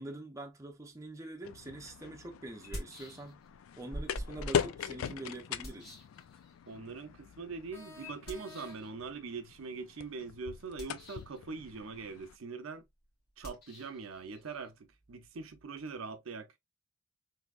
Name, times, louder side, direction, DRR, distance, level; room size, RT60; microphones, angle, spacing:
voice 1, 0.0-3.4 3.8-6.0, right 2 dB, 15° right, 0.5 m, -45 dB
sound 1, 1.4-12.4, left 8 dB, 70° left, 0.3 m, -41 dB
sound 2, 2.7-3.6 3.9-6.8 8.3-8.9 10.6-11.4 13.4-16.0, equal, 50° left, 1.8 m, -47 dB
voice 2, 6.7-12.8 13.4-16.5, right 4 dB, 70° right, 0.6 m, -42 dB
sound 3, 7.7-9.1, left 2 dB, 10° left, 0.8 m, -53 dB
3.5 x 2.7 x 2.3 m
head